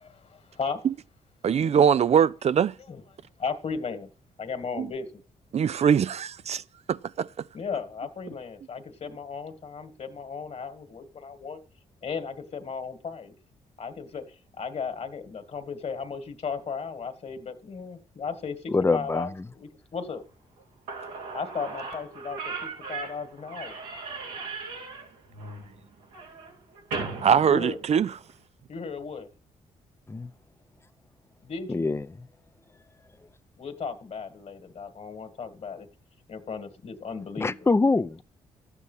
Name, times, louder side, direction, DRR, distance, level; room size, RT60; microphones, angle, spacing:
voice 1, 0.0-0.8 2.9-3.0 3.4-4.1 4.4-5.1 7.5-11.6 12.0-13.4 13.8-14.2 14.6-19.3 19.6-20.2 21.3-23.8 27.5-27.8 28.7-29.3 31.4-31.9 33.6-35.9 36.3-37.5, left 5 dB, 50° left, 1.9 m, -35 dB
voice 2, 1.4-2.7 4.8-4.9 5.5-6.6 6.9-7.3 27.2-28.1, right 7 dB, 50° right, 0.5 m, -22 dB
voice 3, 18.7-19.5 30.1-30.3 31.7-32.3 37.4-38.2, left 3 dB, 20° left, 0.6 m, -25 dB
Slam / Squeak, 20.6-20.7 20.9-28.4, right 4 dB, 90° right, 2.7 m, -38 dB
12.0 x 8.4 x 5.6 m
supercardioid pair, 60°, 14 cm